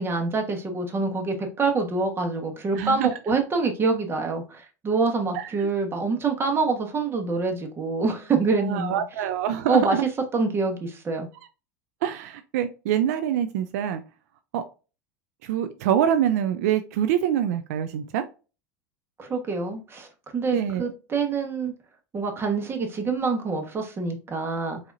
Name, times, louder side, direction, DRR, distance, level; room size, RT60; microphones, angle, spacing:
voice 1, 0.0-9.0 9.7-10.0 10.3-11.3 19.2-20.1 20.3-21.7 22.1-24.8, right 4 dB, 30° right, 1.2 m, -26 dB
voice 2, 2.8-3.1 5.3-5.7 8.6-10.0 12.0-14.0 14.5-14.6 15.4-18.2 20.5-20.9, right 10 dB, 75° right, 0.4 m, -25 dB
4.8 x 2.8 x 2.5 m
hypercardioid pair, 95°, 9 cm